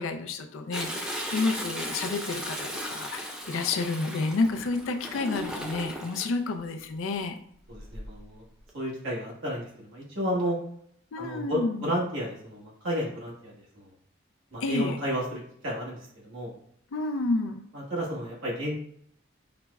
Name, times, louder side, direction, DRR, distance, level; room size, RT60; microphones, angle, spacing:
voice 1, 0.0-7.4 11.1-11.9 14.6-15.0 16.9-17.6, left 3 dB, 75° left, 6 dB, 0.4 m, -30 dB
Toilet flush, 0.7-6.3 7.7-8.2 8.7-8.8, equal, 5° right, 0.3 m, -36 dB
voice 2, 7.7-8.4 8.7-10.6 11.2-13.9 14.5-16.0 16.2-16.5 17.7-18.8, equal, 75° right, -4 dB, 1.2 m, -32 dB
5.7 x 2.0 x 2.3 m, 0.67 s
head